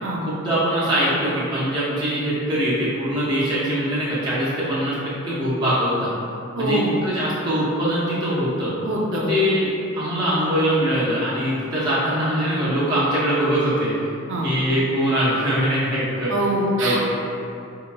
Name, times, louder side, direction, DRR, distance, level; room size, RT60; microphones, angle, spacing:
voice 1, 0.3-5.0 5.2-6.1 6.6-8.7 9.3-13.9 14.4-16.3 16.8-17.0, equal, 20° right, -11 dB, 0.8 m, -22 dB
voice 2, 6.6-6.9 8.8-9.3 14.3-14.5 16.3-17.0, right 1 dB, 60° right, -2 dB, 0.6 m, -23 dB
4.9 x 2.8 x 2.2 m, 2.7 s
head